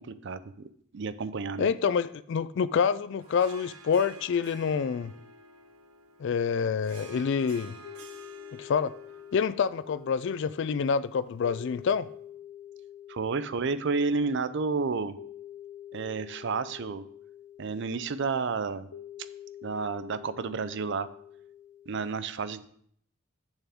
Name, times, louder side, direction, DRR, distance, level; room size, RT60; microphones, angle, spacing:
voice 1, 0.0-1.7 13.1-15.2 15.9-17.0 17.6-18.9 19.6-21.1 21.9-22.7, right 4 dB, 55° right, 0.5 m, -31 dB
voice 2, 1.6-5.1 6.2-7.8 8.6-8.9 9.3-12.1, left 6 dB, 55° left, 0.3 m, -27 dB
Harp, 3.2-11.8, right 2 dB, 85° right, 0.9 m, -51 dB
sound 1, 7.8-22.0, left 10 dB, 85° left, 0.6 m, -47 dB
8.1 x 6.9 x 3.6 m
head